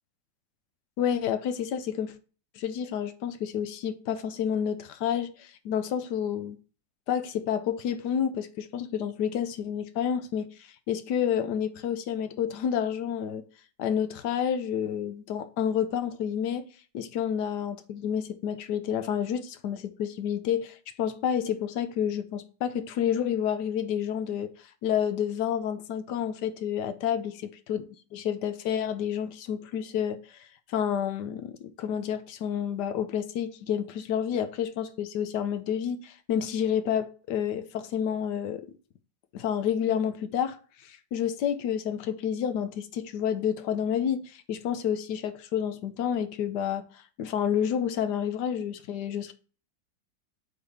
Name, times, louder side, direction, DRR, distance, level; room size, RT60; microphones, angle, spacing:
voice 1, 1.0-2.1 2.6-6.6 7.1-10.5 10.9-13.4 13.8-16.7 16.9-24.5 24.8-27.3 27.7-27.8 28.1-30.4 30.7-38.7 39.3-40.6 40.8-49.3, left 8 dB, 65° left, 1.3 m, -29 dB
8.1 x 4.1 x 3.4 m
omnidirectional pair, 2.0 m